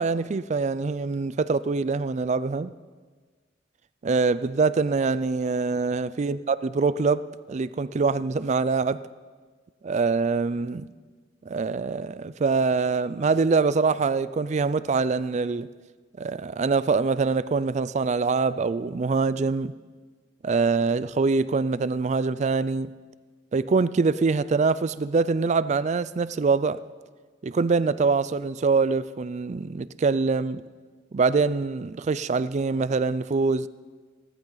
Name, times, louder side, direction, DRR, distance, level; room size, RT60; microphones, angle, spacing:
voice 1, 0.0-2.7 4.0-9.0 9.8-10.9 11.5-15.7 16.2-19.7 20.4-22.9 23.5-26.8 27.4-30.6 31.1-33.7, right 4 dB, 40° right, 0.4 m, -24 dB
17.5 x 14.0 x 4.0 m
head